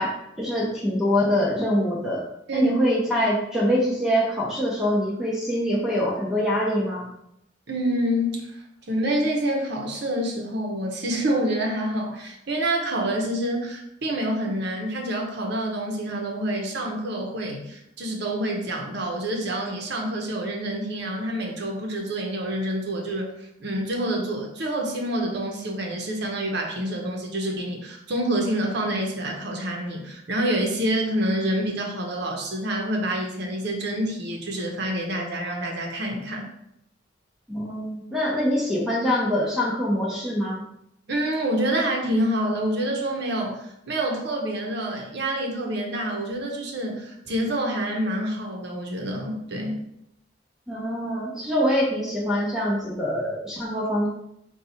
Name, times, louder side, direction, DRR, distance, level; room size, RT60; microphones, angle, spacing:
voice 1, 0.0-2.2 2.5-7.1 37.5-40.6 50.7-54.1, equal, 5° right, -5 dB, 0.7 m, -24 dB
voice 2, 7.7-23.3 23.6-36.5 41.1-49.8, right 1 dB, 65° right, 1 dB, 0.8 m, -27 dB
4.0 x 2.3 x 4.2 m, 0.79 s
head